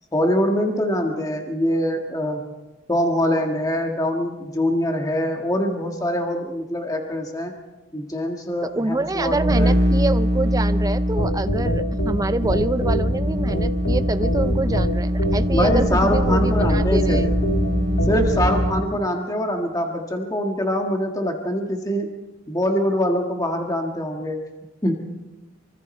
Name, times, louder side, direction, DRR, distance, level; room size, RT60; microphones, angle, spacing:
voice 1, 0.1-2.4 2.9-7.5 7.9-9.8 15.5-17.2 18.1-22.1 22.5-24.4 24.8-25.0, equal, 20° left, 2 dB, 1.7 m, -23 dB
voice 2, 8.6-17.3, right 2 dB, 20° right, 12 dB, 0.6 m, -26 dB
sound 1, 9.0-18.9, equal, 65° right, 2.2 m, -23 dB
sound 2, 11.2-18.8, equal, 80° left, 2.5 m, -24 dB
25.0 x 25.0 x 4.3 m, 1.1 s
head